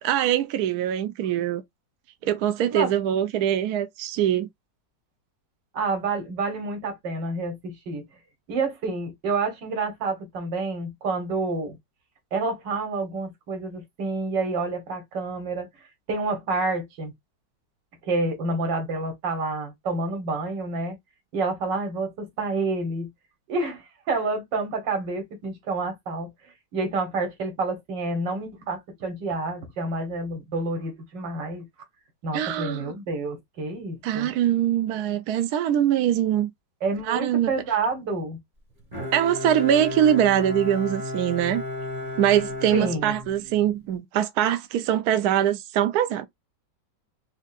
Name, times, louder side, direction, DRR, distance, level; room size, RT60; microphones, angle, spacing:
voice 1, 0.0-1.6 2.2-4.5 32.3-32.9 34.0-36.5 37.1-37.5 39.1-41.6 42.2-46.3, right 10 dB, 70° right, 1.0 m, -23 dB
voice 2, 5.7-8.0 8.5-11.8 12.3-15.7 16.1-17.1 18.1-21.0 21.3-23.1 23.5-26.3 26.7-31.7 32.2-34.3 36.8-38.4 42.7-43.1, right 3 dB, 85° right, 2.0 m, -28 dB
Bowed string instrument, 38.9-43.8, left 2 dB, 25° right, 1.3 m, -33 dB
4.5 x 2.5 x 2.4 m
omnidirectional pair, 1.9 m